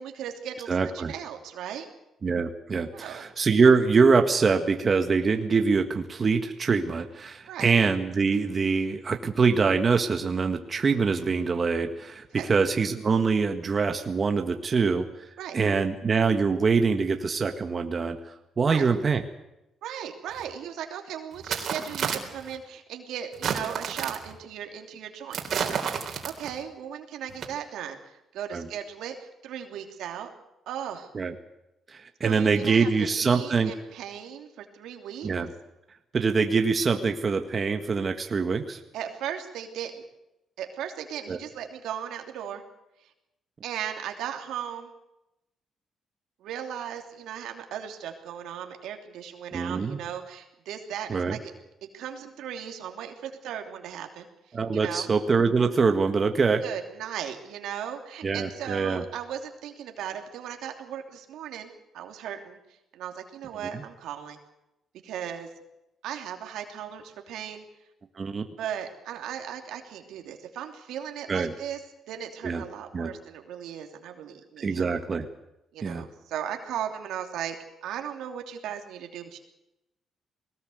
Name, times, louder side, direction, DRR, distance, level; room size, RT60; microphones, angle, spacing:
voice 1, 0.0-1.9 2.9-3.2 7.5-7.7 12.3-12.5 15.4-15.6 18.7-18.9 19.8-25.4 26.2-29.1 29.4-30.3 30.7-31.1 32.2-32.9 33.2-35.3 38.9-40.0 40.6-42.6 43.6-44.9 46.4-51.5 51.9-55.1 56.6-62.6 62.9-64.4 65.0-65.5 66.0-67.6 68.6-71.8 72.1-74.9 75.7-79.4, right 9 dB, 85° right, 4 dB, 3.0 m, -37 dB
voice 2, 0.7-1.1 2.2-15.1 15.5-18.2 18.6-19.2 28.5-28.7 31.1-31.3 31.9-33.7 35.2-35.5 36.1-38.8 41.3-41.4 49.5-50.0 51.1-51.4 54.5-56.6 58.2-59.0 63.7-63.8 68.2-68.4 71.3-71.5 72.4-72.6 72.9-73.1 74.6-75.3 75.8-76.0, right 5 dB, 40° right, 5 dB, 1.7 m, -24 dB
sound 1, 20.4-20.5 21.3-22.5 23.3-24.3 25.3-26.6 27.3-27.4, right 7 dB, 60° right, 3.8 m, -31 dB
21.0 x 19.0 x 7.9 m, 0.91 s
cardioid pair, 90°, 0 cm